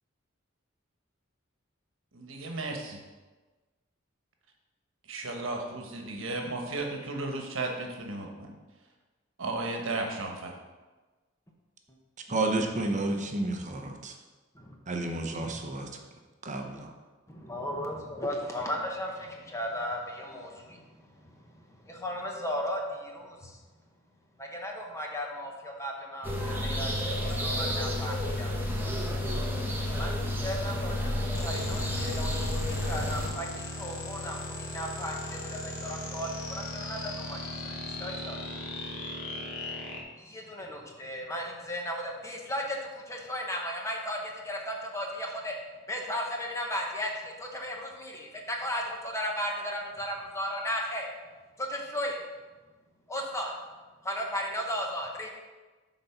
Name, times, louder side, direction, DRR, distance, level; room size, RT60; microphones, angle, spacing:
voice 1, 2.1-3.0 5.1-8.5 9.4-10.5, right 2 dB, 70° right, 2 dB, 1.2 m, -34 dB
voice 2, 12.3-14.1 14.9-15.9 16.4-16.9, right 2 dB, 40° right, 3 dB, 0.9 m, -31 dB
voice 3, 17.3-20.8 21.2-21.3 21.8-23.6 24.4-28.9 30.0-30.1 30.4-38.4 40.2-42.8 43.1-45.5 45.9-51.1 51.6-52.2 53.1-53.5 54.0-55.3, equal, 15° left, 0 dB, 1.0 m, -35 dB
sound 1, 26.2-33.3, left 1 dB, 10° right, 1.0 m, -30 dB
sound 2, 31.3-40.0, left 1 dB, 75° left, 1.2 m, -38 dB
8.5 x 4.0 x 5.7 m, 1.3 s
head